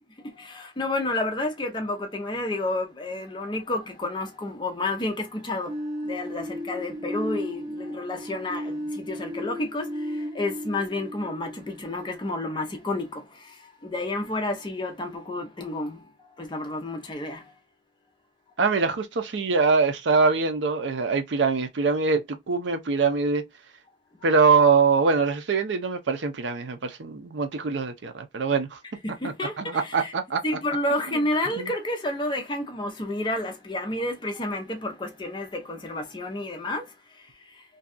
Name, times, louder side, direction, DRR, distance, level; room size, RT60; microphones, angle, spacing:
voice 1, 0.4-5.7 6.1-9.9 10.3-13.2 13.8-16.0 16.4-17.4 29.0-30.1 30.4-36.8, left 2 dB, 25° left, 0.5 m, -30 dB
sound 1, 5.7-12.4, equal, 35° right, 1.2 m, -35 dB
voice 2, 18.6-23.4 24.2-28.8 29.2-30.4 31.6-31.7, right 4 dB, 75° right, 0.5 m, -23 dB
2.6 x 2.2 x 2.4 m
head